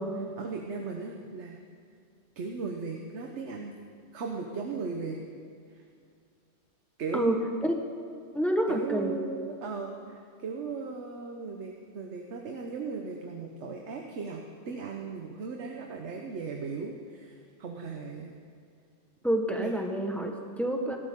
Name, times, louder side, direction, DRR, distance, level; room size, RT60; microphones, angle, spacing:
voice 1, 0.4-1.6 2.4-3.7 4.1-5.2 5.7-5.8 7.0-7.3 8.7-18.3 19.6-19.7, right 4 dB, 70° right, 2 dB, 1.3 m, -37 dB
voice 2, 7.1-7.7 8.3-9.2 19.2-21.0, equal, ahead, 2 dB, 1.1 m, -28 dB
18.5 x 12.5 x 3.7 m, 2.3 s
omnidirectional pair, 1.2 m